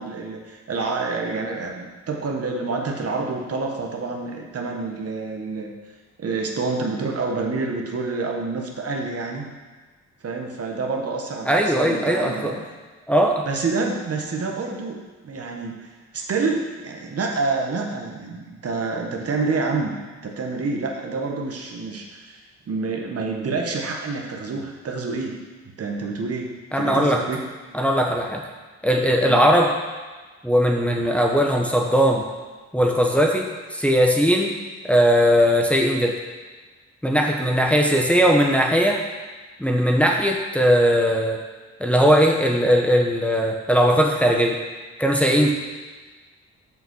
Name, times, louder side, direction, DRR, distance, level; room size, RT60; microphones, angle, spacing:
voice 1, 0.0-5.7 6.2-9.5 10.2-12.6 13.5-15.0 15.2-15.8 16.1-19.9 20.2-22.4 22.7-25.4 25.8-26.5 26.8-27.4 29.2-29.4 34.5-34.6, right 3 dB, 55° right, 1 dB, 1.5 m, -28 dB
voice 2, 11.5-12.6 13.1-13.4 26.7-27.2 27.7-28.5 28.8-29.7 30.4-32.2 32.7-34.5 34.8-36.2 37.0-39.0 39.6-41.4 41.8-44.6 45.0-45.5, equal, 5° left, 0 dB, 1.2 m, -19 dB
7.2 x 5.7 x 6.3 m, 1.3 s
cardioid pair, 70°, 30 cm